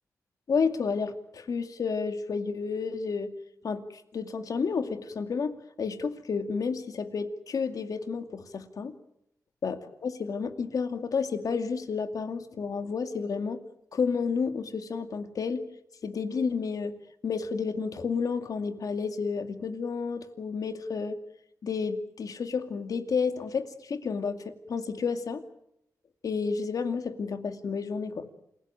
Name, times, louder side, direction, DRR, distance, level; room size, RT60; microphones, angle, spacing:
voice 1, 0.5-3.3 3.6-8.9 9.6-13.6 13.9-15.6 16.0-16.9 17.2-21.2 21.6-25.4 26.2-28.3, left 5 dB, 70° left, 8 dB, 2.3 m, -31 dB
28.0 x 17.5 x 9.1 m, 0.77 s
wide cardioid pair, 95°, 6 cm